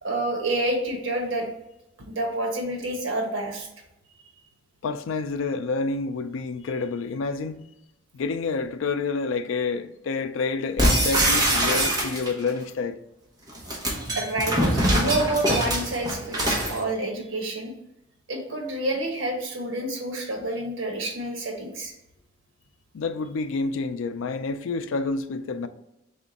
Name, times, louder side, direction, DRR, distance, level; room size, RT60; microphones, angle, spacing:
voice 1, 0.0-1.5 2.1-3.7 14.1-14.6 14.9-17.7 18.3-21.9, right 1 dB, 85° right, 1.1 m, -28 dB
voice 2, 4.8-7.6 8.1-13.0 22.9-25.7, left 4 dB, 90° left, 0.4 m, -28 dB
sound 1, 10.8-12.5 13.5-16.8, right 1 dB, 20° right, 1.0 m, -23 dB
3.6 x 3.5 x 4.0 m
head